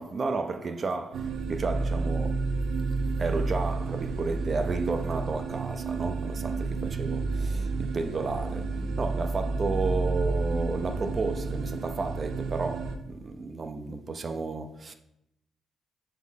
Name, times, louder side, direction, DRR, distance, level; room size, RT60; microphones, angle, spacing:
voice 1, 0.0-2.4 3.2-14.9, right 4 dB, 40° right, 0.7 m, -32 dB
sound 1, 1.1-13.0, right 3 dB, 75° right, 0.7 m, -30 dB
7.1 x 4.2 x 4.1 m
cardioid pair, 90°, 0 cm